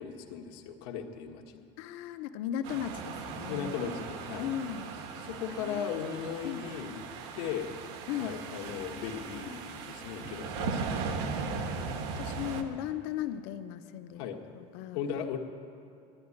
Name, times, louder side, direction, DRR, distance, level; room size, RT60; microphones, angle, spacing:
voice 1, 0.0-1.6 3.5-4.5 5.2-7.0 7.3-7.7 8.2-11.0 14.2-14.4 14.9-15.4, left 8 dB, 85° left, 3 dB, 1.5 m, -37 dB
voice 2, 1.8-3.8 4.4-4.9 5.6-6.0 6.4-6.6 8.1-8.4 11.4-11.8 12.2-14.3 14.5-15.0, left 10 dB, 65° left, 10 dB, 0.8 m, -37 dB
sound 1, 2.6-12.6, right 4 dB, 75° right, 1.3 m, -38 dB
11.5 x 11.5 x 9.7 m, 2.7 s
cardioid pair, 175°, 14 cm